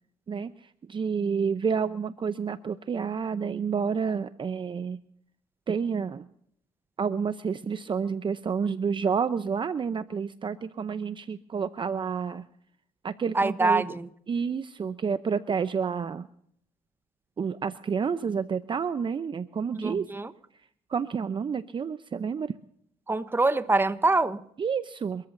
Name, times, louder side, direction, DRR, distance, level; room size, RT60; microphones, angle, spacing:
voice 1, 0.9-5.0 5.7-6.3 7.0-12.5 13.0-13.8 14.3-16.3 17.4-20.1 20.9-22.5 24.6-25.3, right 6 dB, 35° right, 0.6 m, -29 dB
voice 2, 13.3-14.1 19.8-20.3 23.1-24.4, right 3 dB, 15° right, 1.0 m, -24 dB
29.0 x 14.0 x 2.6 m
cardioid pair, 90°, 14 cm